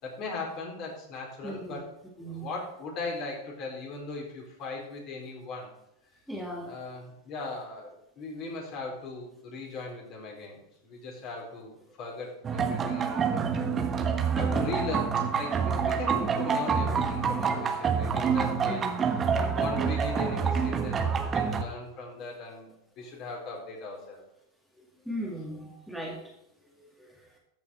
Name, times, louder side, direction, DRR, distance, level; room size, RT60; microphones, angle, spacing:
voice 1, 0.0-1.9 2.2-5.7 6.6-13.4 14.3-18.9 19.4-22.7 23.0-24.2, left 3 dB, 45° left, -1 dB, 4.4 m, -39 dB
voice 2, 1.4-1.8 2.2-2.5 6.3-6.7 18.7-19.1 25.1-26.2 27.0-27.2, equal, ahead, -2 dB, 2.1 m, -37 dB
El Petronio Alvarez remate and taxi Cali, 12.4-21.6, right 6 dB, 30° right, 1.2 m, -27 dB
14.0 x 6.1 x 4.6 m, 0.81 s
hypercardioid pair, 95°, 0 cm